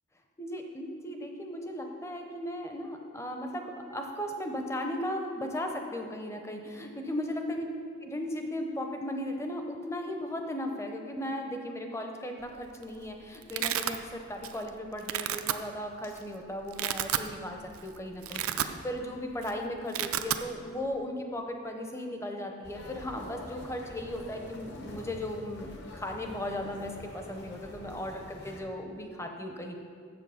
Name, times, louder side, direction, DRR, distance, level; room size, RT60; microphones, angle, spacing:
voice 1, 0.4-7.6 8.0-25.7 25.9-29.8, left 1 dB, 15° left, 3 dB, 0.6 m, -36 dB
Domestic sounds home sounds, 12.5-12.8 13.1-14.0 14.4-14.7 15.0-15.5 16.2-16.3 16.6-17.3 17.7-17.8 18.1-19.1 19.3-19.5 19.8-20.4, right 11 dB, 80° right, 0.4 m, -31 dB
sound 1, 16.0-16.7 18.1-18.8, left 1 dB, 85° left, 1.6 m, -53 dB
sound 2, 22.6-28.6, left 1 dB, 50° left, 1.1 m, -46 dB
7.7 x 7.1 x 5.6 m, 2.2 s
head